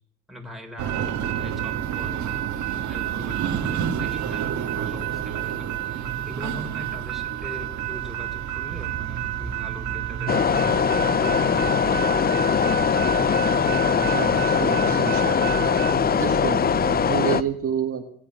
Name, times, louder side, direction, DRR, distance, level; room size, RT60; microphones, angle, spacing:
voice 1, 0.3-2.4 2.8-11.3, equal, ahead, 2 dB, 3.5 m, -41 dB
sound 1, 0.8-17.4, right 10 dB, 70° right, 1.7 m, -29 dB
sound 2, 8.9-12.9, left 4 dB, 55° left, 6.6 m, -49 dB
sound 3, 10.3-17.4, left 7 dB, 30° left, 0.5 m, -21 dB
voice 2, 13.9-15.5 15.9-18.0, right 7 dB, 45° right, 4 dB, 1.7 m, -30 dB
22.0 x 8.5 x 6.5 m, 0.69 s
cardioid pair, 90°, 30 cm